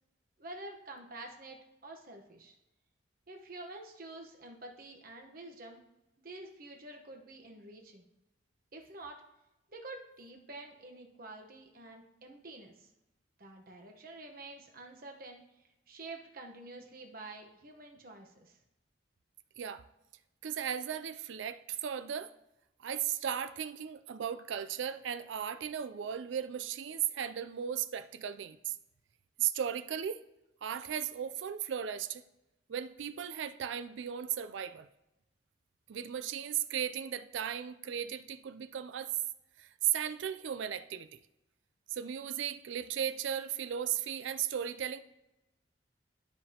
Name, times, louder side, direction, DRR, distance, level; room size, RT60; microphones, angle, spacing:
voice 1, 0.4-2.6 3.3-5.8 6.2-8.0 8.7-9.2 9.7-12.9 13.4-15.4 15.9-18.6, right 2 dB, 50° right, 1.0 m, -48 dB
voice 2, 20.4-22.3 22.8-28.7 29.4-30.2 30.6-32.3 32.7-34.9 35.9-39.1 39.6-41.2 41.9-45.0, right 9 dB, 80° right, 0.4 m, -36 dB
12.0 x 5.0 x 2.9 m
head